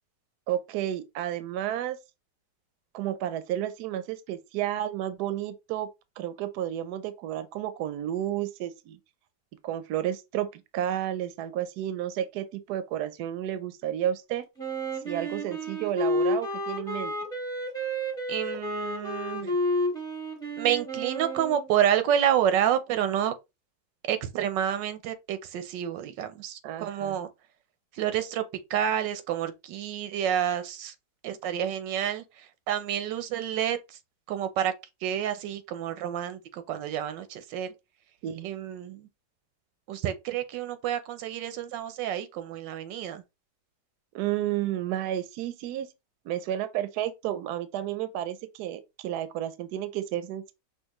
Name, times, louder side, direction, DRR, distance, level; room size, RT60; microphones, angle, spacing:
voice 1, 0.5-2.0 2.9-5.9 6.2-9.0 9.6-14.4 15.0-17.1 26.6-27.2 38.2-38.5 44.1-45.9 46.3-50.5, right 11 dB, 75° right, 1.1 m, -31 dB
Wind instrument woodwind instrument, 14.6-21.7, equal, 5° left, 1.1 m, -31 dB
voice 2, 18.3-19.5 20.6-23.3 24.1-27.3 28.0-28.4 28.7-30.9 31.2-32.2 32.7-33.8 34.3-34.7 35.0-37.7 38.4-39.1 39.9-43.2, right 10 dB, 90° right, 1.4 m, -29 dB
5.6 x 2.9 x 3.0 m
omnidirectional pair, 1.9 m